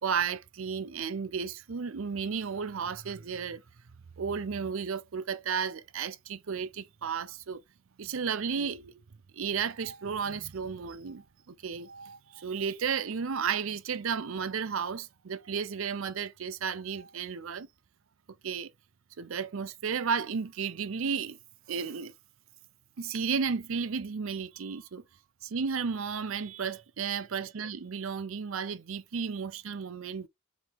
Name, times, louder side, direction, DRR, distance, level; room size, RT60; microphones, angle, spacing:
voice 1, 0.0-3.6 4.2-7.6 8.0-9.0 9.3-17.7 18.4-18.7 19.2-21.4 21.7-22.1 23.0-25.0 25.4-30.3, right 6 dB, 70° right, 0.5 m, -33 dB
4.8 x 2.9 x 3.6 m
head